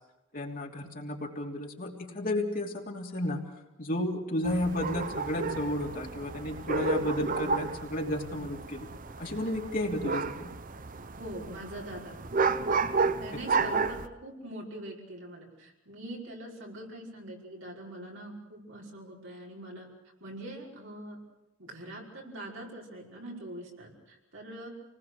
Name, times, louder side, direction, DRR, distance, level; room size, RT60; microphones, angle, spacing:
voice 1, 0.3-3.4 3.8-8.9 9.2-10.5 13.6-13.7, left 1 dB, 45° left, 0 dB, 3.1 m, -32 dB
sound 1, 4.4-14.1, right 4 dB, 40° right, 0.9 m, -32 dB
voice 2, 11.1-12.2 13.2-19.9 20.2-21.2 21.6-24.7, right 1 dB, 70° right, -2 dB, 5.4 m, -43 dB
28.5 x 20.0 x 6.6 m, 0.97 s
head